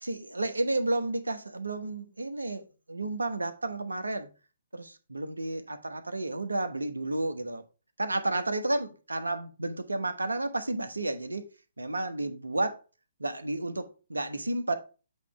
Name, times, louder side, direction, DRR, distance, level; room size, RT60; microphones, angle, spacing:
voice 1, 0.0-4.3 4.7-7.6 8.0-11.5 11.8-12.8 13.2-14.7, right 2 dB, 85° right, 1.1 m, -31 dB
8.2 x 3.2 x 4.7 m
figure-of-eight pair, 135°, 0 cm